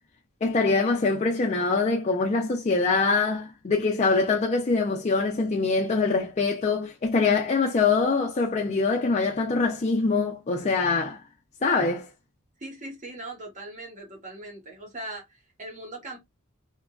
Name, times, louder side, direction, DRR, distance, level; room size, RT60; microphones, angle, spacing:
voice 1, 0.4-11.2 11.6-12.1, left 4 dB, 30° left, 0.4 m, -24 dB
voice 2, 12.6-16.2, right 2 dB, 35° right, 1.0 m, -40 dB
2.9 x 2.4 x 2.3 m
head